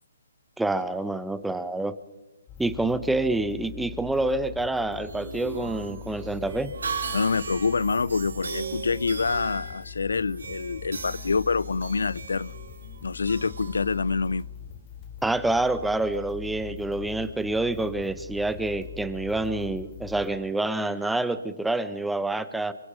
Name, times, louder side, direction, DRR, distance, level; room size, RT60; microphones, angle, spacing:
voice 1, 0.6-1.9 2.6-6.7 15.2-22.7, right 2 dB, 5° right, 1.1 m, -27 dB
sound 1, 2.5-20.3, left 8 dB, 20° left, 3.1 m, -42 dB
sound 2, 4.9-14.4, right 5 dB, 80° right, 3.7 m, -38 dB
voice 2, 7.1-12.5 13.0-14.4, left 4 dB, 85° left, 0.7 m, -26 dB
28.5 x 23.5 x 5.2 m
hypercardioid pair, 150°, 0 cm